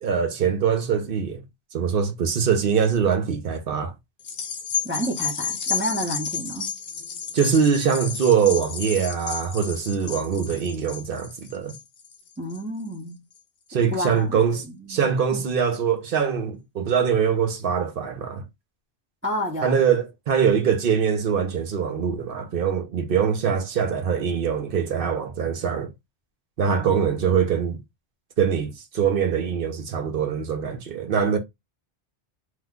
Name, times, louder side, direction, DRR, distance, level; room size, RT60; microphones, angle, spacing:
voice 1, 0.0-1.4 1.7-3.9 7.3-11.8 13.7-18.4 19.6-25.9 26.6-27.8 28.4-31.4, right 7 dB, 60° right, 0.8 m, -23 dB
sound 1, 4.2-12.9 13.4-13.5, left 7 dB, 55° left, 0.8 m, -32 dB
voice 2, 4.8-6.7 12.4-13.2 13.9-15.4 19.2-19.8 26.7-27.0, equal, 15° right, 0.5 m, -30 dB
3.1 x 2.1 x 3.5 m
omnidirectional pair, 1.1 m